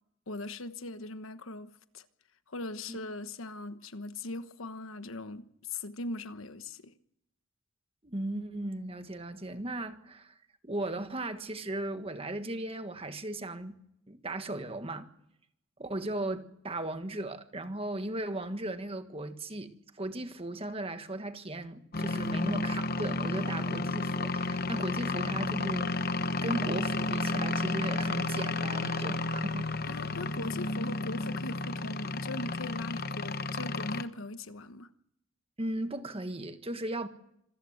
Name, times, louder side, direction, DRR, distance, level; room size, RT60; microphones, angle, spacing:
voice 1, 0.3-2.0 2.5-6.9 29.9-34.9, left 2 dB, 90° left, 1.3 m, -40 dB
voice 2, 8.0-10.4 10.6-13.7 14.1-15.1 15.8-26.2 26.4-29.7 35.6-37.1, right 1 dB, 30° right, 1.5 m, -37 dB
sound 1, 21.9-34.0, left 3 dB, 50° left, 0.9 m, -32 dB
26.0 x 15.0 x 8.0 m
head